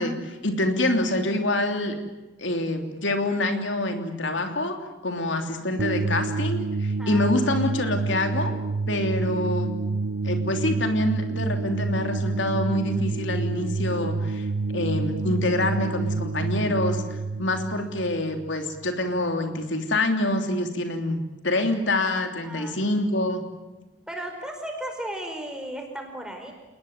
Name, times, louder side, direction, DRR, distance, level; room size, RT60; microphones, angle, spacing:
voice 1, 0.0-1.9 2.4-4.8 5.0-8.5 8.9-9.7 10.2-14.5 14.7-17.0 17.4-23.4, left 1 dB, 80° left, 5 dB, 3.2 m, -26 dB
sound 1, 5.8-18.9, right 3 dB, 90° right, 0.8 m, -28 dB
voice 2, 7.0-7.6 22.4-22.8 24.1-26.5, right 1 dB, 5° right, 3 dB, 5.0 m, -35 dB
29.5 x 20.0 x 9.5 m, 1.1 s
head